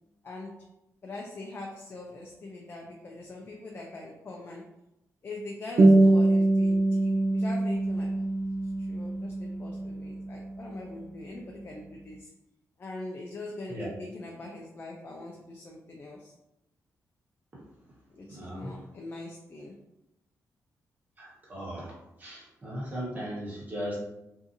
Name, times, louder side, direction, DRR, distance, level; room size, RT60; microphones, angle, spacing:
voice 1, 0.2-0.5 1.0-4.6 5.2-8.2 8.6-12.3 12.8-16.3 18.1-19.7, left 2 dB, 35° left, -1 dB, 0.4 m, -42 dB
sound 1, 5.8-10.8, right 2 dB, 50° right, 0.4 m, -24 dB
voice 2, 18.3-18.7 21.2-21.9 22.2-24.0, equal, 30° right, -7 dB, 1.3 m, -37 dB
2.6 x 2.4 x 2.6 m, 0.89 s
cardioid pair, 100°, 6 cm